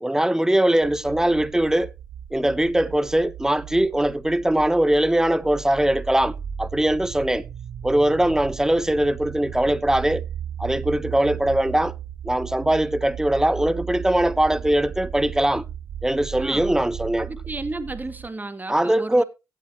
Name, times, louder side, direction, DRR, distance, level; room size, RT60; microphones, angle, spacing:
voice 1, 0.0-1.9 2.3-7.4 7.8-10.2 10.6-11.9 12.2-15.6 16.0-17.3 18.7-19.2, right 1 dB, 10° right, 1.0 m, -21 dB
sound 1, 0.8-18.3, right 8 dB, 75° right, 0.8 m, -36 dB
voice 2, 17.3-19.2, right 2 dB, 25° right, 2.2 m, -32 dB
16.5 x 8.5 x 2.9 m
supercardioid pair, 55°, 7 cm